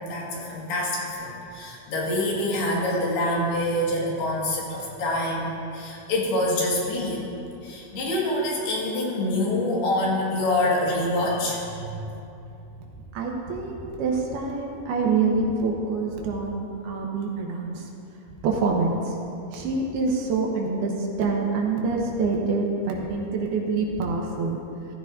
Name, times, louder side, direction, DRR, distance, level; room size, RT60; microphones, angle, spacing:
voice 1, 0.0-7.3 7.6-12.0, left 1 dB, 75° left, -4 dB, 3.9 m, -26 dB
voice 2, 13.1-17.8 18.4-19.1 19.5-20.9 21.2-24.6, right 4 dB, 75° right, -1 dB, 3.1 m, -26 dB
15.0 x 14.0 x 2.7 m, 2.7 s
omnidirectional pair, 4.7 m